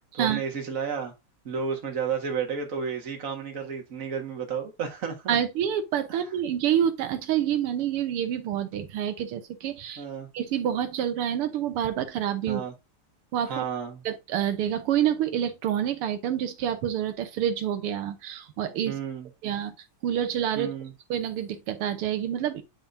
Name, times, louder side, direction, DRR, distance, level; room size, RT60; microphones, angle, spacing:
voice 1, 0.1-1.1 1.5-5.4 6.1-6.2 10.0-10.3 12.5-12.7 13.5-14.0 18.9-19.3 20.6-20.9, right 6 dB, 40° right, 1.8 m, -32 dB
voice 2, 5.3-10.0 10.3-12.6 13.3-13.6 14.1-19.0 19.4-19.7 20.0-20.7 21.1-22.6, right 10 dB, 85° right, 1.8 m, -27 dB
10.5 x 3.6 x 2.6 m
omnidirectional pair, 2.4 m